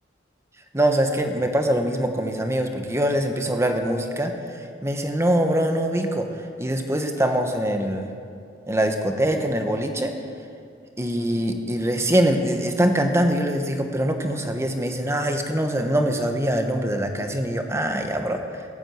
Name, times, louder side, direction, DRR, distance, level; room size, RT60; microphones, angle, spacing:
voice 1, 0.7-4.3 4.8-6.3 6.6-8.1 8.7-10.1 11.0-18.4, right 1 dB, 15° right, 5 dB, 1.2 m, -23 dB
16.0 x 8.7 x 7.9 m, 2.4 s
head